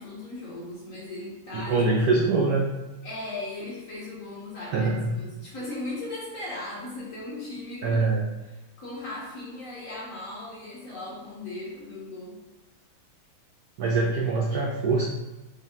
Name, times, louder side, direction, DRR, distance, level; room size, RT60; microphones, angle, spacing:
voice 1, 0.0-1.8 2.2-2.3 3.0-8.1 8.5-12.4, left 2 dB, 50° left, -6 dB, 1.2 m, -38 dB
voice 2, 1.5-2.7 4.7-5.1 7.8-8.3 13.8-15.0, right 3 dB, 80° right, -1 dB, 0.8 m, -23 dB
5.3 x 2.1 x 3.6 m, 1.1 s
omnidirectional pair, 2.2 m